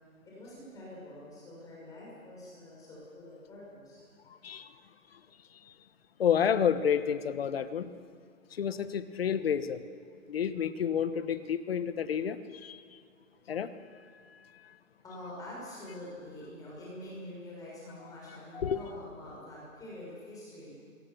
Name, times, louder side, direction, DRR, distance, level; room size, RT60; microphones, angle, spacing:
voice 1, 0.2-4.0 15.0-20.8, left 1 dB, 10° left, -5 dB, 6.1 m, -46 dB
voice 2, 6.2-7.9 8.5-9.8 10.3-12.8 13.5-13.7 18.5-18.8, left 8 dB, 45° left, 12 dB, 1.3 m, -30 dB
26.0 x 22.0 x 7.0 m, 2.3 s
hypercardioid pair, 160°, 42 cm